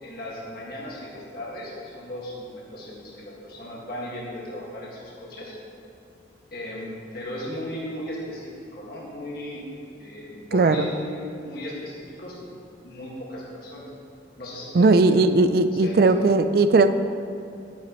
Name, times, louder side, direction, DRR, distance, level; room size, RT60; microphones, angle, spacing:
voice 1, 0.0-5.5 6.5-9.6 10.0-11.2 11.4-12.5 12.8-13.9 14.4-16.5, left 1 dB, 55° left, -5 dB, 1.8 m, -36 dB
voice 2, 10.5-10.9 14.7-16.9, right 3 dB, 55° right, 10 dB, 0.4 m, -18 dB
12.0 x 9.0 x 3.1 m, 2.5 s
head